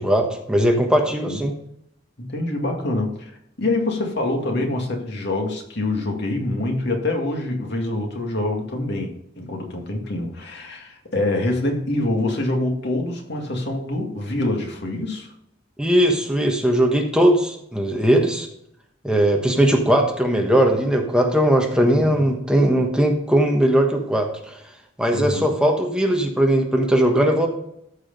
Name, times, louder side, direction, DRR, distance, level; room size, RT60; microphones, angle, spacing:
voice 1, 0.0-1.5 15.8-18.5 19.0-24.6 25.0-27.5, right 1 dB, 5° right, 1 dB, 1.3 m, -19 dB
voice 2, 2.2-3.2 3.6-15.3 21.8-22.3 25.1-25.5, left 2 dB, 65° left, 2 dB, 2.1 m, -25 dB
14.0 x 4.8 x 5.3 m, 0.73 s
head